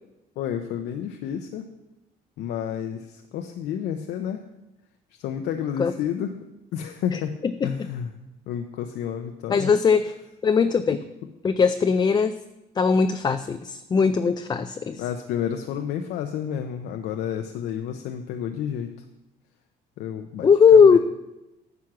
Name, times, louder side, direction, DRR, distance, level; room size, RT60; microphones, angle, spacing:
voice 1, 0.4-1.7 2.4-4.4 5.2-6.3 6.7-7.3 7.6-8.1 8.5-9.7 10.9-11.0 15.0-18.9 20.0-21.0, left 9 dB, 80° left, 5 dB, 0.7 m, -30 dB
voice 2, 9.5-10.1 10.4-11.0 11.4-12.3 12.8-15.0 20.4-21.0, left 6 dB, 25° left, 9 dB, 0.4 m, -19 dB
9.6 x 6.0 x 6.0 m, 0.93 s
cardioid pair, 110°, 17 cm